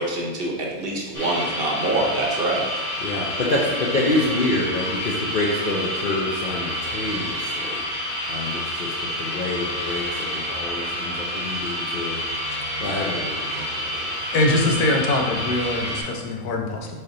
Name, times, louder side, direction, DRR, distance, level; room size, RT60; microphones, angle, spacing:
voice 1, 0.0-2.6, right 2 dB, 50° right, -1 dB, 0.8 m, -25 dB
sound 1, 1.1-16.0, equal, 15° left, 1.2 m, -29 dB
voice 2, 3.0-7.8 8.3-12.2 12.8-14.1 14.6-15.1, left 2 dB, 65° left, -4 dB, 0.5 m, -27 dB
voice 3, 14.3-16.9, left 2 dB, 85° left, 2 dB, 1.2 m, -22 dB
4.3 x 3.3 x 3.7 m, 1.3 s
omnidirectional pair, 1.6 m